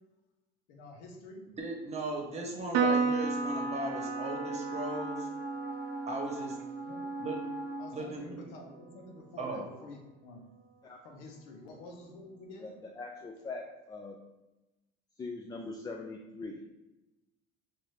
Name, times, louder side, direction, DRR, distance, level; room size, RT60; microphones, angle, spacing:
voice 1, 0.7-1.5 6.8-7.0 7.8-10.4 11.0-12.7, left 2 dB, 85° left, 1 dB, 0.8 m, -49 dB
voice 2, 1.6-5.3 6.1-6.6 7.2-7.4 7.9-8.2 9.4-9.6, right 2 dB, 35° right, 1 dB, 1.0 m, -37 dB
Piano, 2.7-9.4, right 4 dB, 75° right, 0.5 m, -35 dB
Wind instrument woodwind instrument, 3.1-7.9, right 2 dB, 10° right, 0.7 m, -39 dB
voice 3, 12.6-14.2 15.2-16.6, left 3 dB, 20° left, 2 dB, 0.3 m, -42 dB
4.0 x 2.5 x 3.1 m, 1.0 s
supercardioid pair, 100°, 19 cm